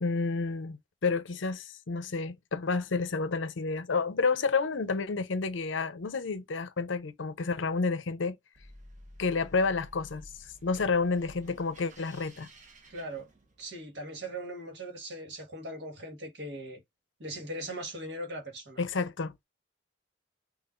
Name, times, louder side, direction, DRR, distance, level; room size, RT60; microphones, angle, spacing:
voice 1, 0.0-8.4 9.2-10.3 10.6-12.5 18.8-19.4, left 4 dB, 90° left, 0.7 m, -30 dB
sound 1, 8.5-13.8, equal, 40° right, 1.1 m, -52 dB
voice 2, 12.9-13.3 13.6-16.8 17.2-18.8, right 1 dB, 65° right, 1.7 m, -39 dB
5.6 x 2.5 x 2.5 m
head